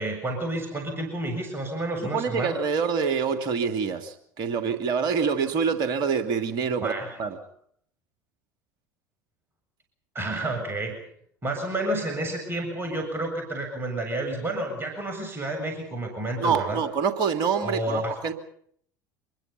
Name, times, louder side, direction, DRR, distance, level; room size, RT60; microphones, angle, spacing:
voice 1, 0.0-2.6 6.8-7.2 10.1-11.0 11.4-16.8 17.6-18.3, right 1 dB, 20° right, 7.4 m, -30 dB
voice 2, 2.0-6.9 7.2-7.4 16.4-18.3, right 6 dB, 50° right, 2.8 m, -26 dB
26.5 x 22.0 x 5.7 m
figure-of-eight pair, 70°, 10 cm